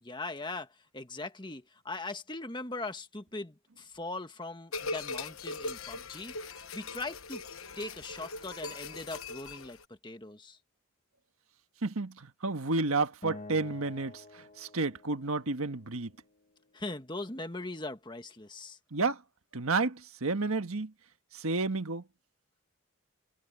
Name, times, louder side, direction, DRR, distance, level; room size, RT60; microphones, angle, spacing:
voice 1, 0.0-6.4 6.7-7.4 7.7-10.6 16.7-18.8, left 2 dB, 20° left, 1.5 m, -40 dB
sound 1, 4.7-9.8, left 3 dB, 80° left, 1.1 m, -40 dB
voice 2, 11.8-16.1 18.9-19.2 19.5-20.9 21.3-22.0, right 3 dB, 85° right, 1.5 m, -31 dB
Acoustic guitar, 13.2-16.5, left 2 dB, 35° left, 1.0 m, -49 dB
head